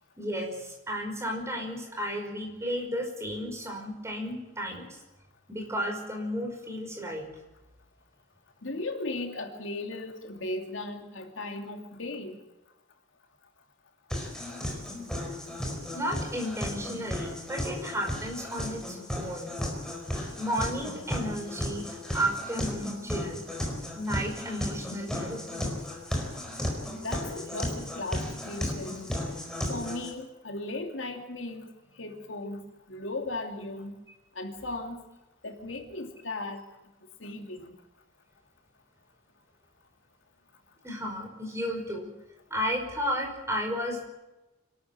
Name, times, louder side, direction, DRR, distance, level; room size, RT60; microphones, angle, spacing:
voice 1, 0.2-4.9 5.5-7.2 15.9-19.5 20.1-23.4 23.9-25.7 40.8-42.1 42.5-44.1, equal, 15° right, 2 dB, 5.4 m, -33 dB
voice 2, 8.6-12.4 27.0-29.0 29.7-31.7 32.0-32.6 32.9-33.9 34.4-35.0 35.4-36.6 37.2-37.8, left 2 dB, 75° left, 4 dB, 2.8 m, -36 dB
sound 1, 14.1-30.1, left 1 dB, 5° left, 4.6 m, -34 dB
26.0 x 13.0 x 8.9 m, 1.0 s
head